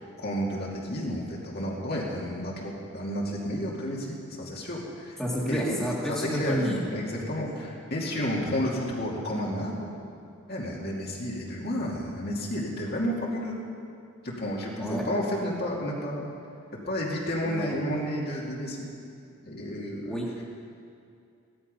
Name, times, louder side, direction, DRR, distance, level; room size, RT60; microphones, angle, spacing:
voice 1, 0.0-5.2 5.5-5.8 6.1-9.9 10.5-13.6 14.2-16.3 16.9-18.9 19.4-20.2, equal, 45° left, -3 dB, 2.5 m, -31 dB
voice 2, 5.2-6.8 14.8-15.0 17.4-17.7 20.1-20.4, equal, ahead, -6 dB, 2.1 m, -30 dB
17.0 x 12.5 x 5.5 m, 2.5 s
head